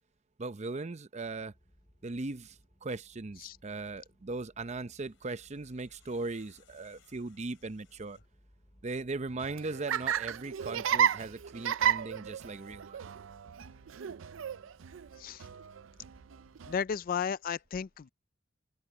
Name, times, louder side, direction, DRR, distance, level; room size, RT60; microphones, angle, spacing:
voice 1, 0.4-1.5 2.0-2.6 2.8-8.2 8.8-13.1, right 3 dB, 35° right, 0.6 m, -38 dB
sound 1, 1.2-17.1, equal, 30° left, 5.9 m, -65 dB
sound 2, 4.8-8.5, left 7 dB, 75° left, 5.2 m, -67 dB
Laughter, 9.3-16.8, right 9 dB, 80° right, 0.4 m, -33 dB
voice 2, 16.7-18.1, left 7 dB, 45° left, 0.4 m, -34 dB
head